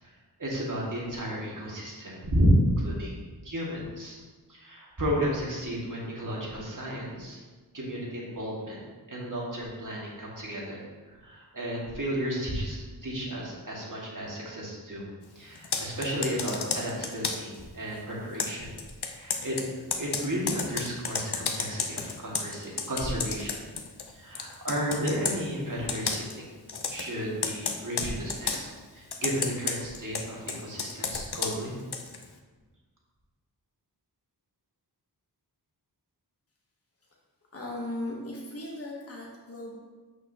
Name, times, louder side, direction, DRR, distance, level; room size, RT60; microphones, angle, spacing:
voice 1, 0.4-4.2 4.5-7.4 7.7-10.8 11.1-15.0 15.4-18.7 19.1-19.6 20.0-23.6 24.1-26.5 26.9-31.7, equal, 50° right, -5 dB, 2.1 m, -32 dB
Computer keyboard, 15.6-17.6 18.4-24.1 24.4-25.4 25.9-26.4 26.7-27.1 27.4-28.6 29.1-32.2, left 5 dB, 65° left, 0.8 m, -32 dB
voice 2, 37.5-39.8, left 1 dB, 35° left, -2 dB, 1.1 m, -37 dB
8.1 x 6.2 x 2.9 m, 1.3 s
wide cardioid pair, 60°, 41 cm